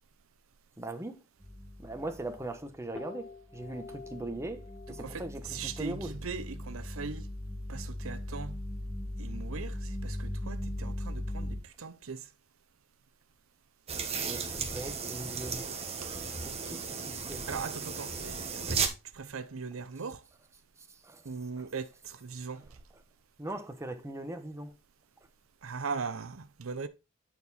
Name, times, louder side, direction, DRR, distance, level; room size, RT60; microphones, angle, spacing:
voice 1, 0.8-1.2 1.8-6.2 14.2-15.8 16.4-17.5 20.8-21.7 22.5-23.0 23.4-24.8, right 2 dB, 15° right, 1.0 m, -41 dB
sound 1, 1.4-2.6 2.9-11.6, left 1 dB, 5° left, 2.2 m, -39 dB
voice 2, 5.5-7.3 7.7-8.6 9.2-12.2 16.0-16.1 17.5-18.8 19.1-20.2 21.3-22.6 25.6-26.9, right 5 dB, 70° right, 0.6 m, -39 dB
sound 2, 13.9-18.9, right 5 dB, 30° right, 1.2 m, -35 dB
9.4 x 4.5 x 4.1 m
head